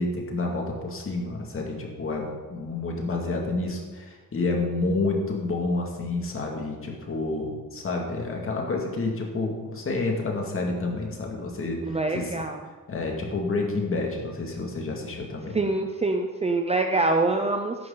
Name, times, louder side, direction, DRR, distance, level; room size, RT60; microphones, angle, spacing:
voice 1, 0.0-12.3 12.9-15.6, left 3 dB, 40° left, 0 dB, 2.3 m, -29 dB
voice 2, 11.9-12.6 15.5-17.8, right 2 dB, 20° right, 4 dB, 0.6 m, -25 dB
14.5 x 11.0 x 4.0 m, 1.4 s
wide cardioid pair, 175°, 35 cm